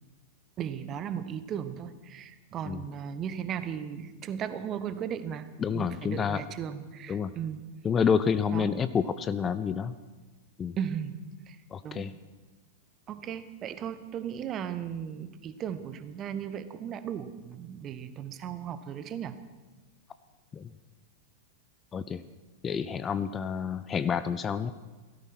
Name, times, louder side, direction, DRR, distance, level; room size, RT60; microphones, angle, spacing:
voice 1, 0.6-5.5 5.7-7.7 8.5-8.7 10.8-11.2 11.5-11.6 11.8-12.0 13.1-19.3, right 8 dB, 30° right, 13 dB, 1.0 m, -36 dB
voice 2, 5.6-6.4 7.1-7.3 7.8-9.9 10.6-10.8 11.7-12.1 20.5-20.7 21.9-22.2 22.6-24.7, left 7 dB, 20° left, 13 dB, 0.5 m, -28 dB
16.5 x 13.5 x 6.2 m, 1.2 s
figure-of-eight pair, 95°, 0 cm